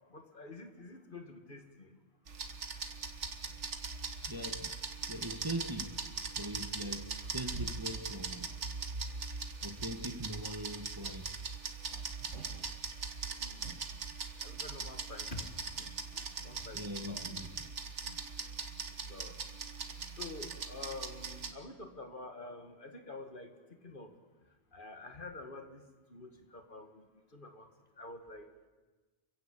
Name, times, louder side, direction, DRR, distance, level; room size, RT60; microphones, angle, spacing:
voice 1, 0.1-2.0 13.3-13.7 14.4-17.3 19.1-19.4 20.2-23.5 23.8-24.1 24.7-25.8 26.1-27.1 27.3-27.7 28.0-28.5, left 2 dB, 45° left, 6 dB, 2.1 m, -48 dB
sound 1, 2.3-21.5, right 5 dB, 85° right, 1.8 m, -41 dB
voice 2, 4.3-4.7 5.1-6.0 6.4-8.5 9.6-11.3 16.7-17.6, right 1 dB, 20° right, 6 dB, 1.4 m, -41 dB
27.5 x 16.0 x 8.7 m, 1.3 s
omnidirectional pair, 1.2 m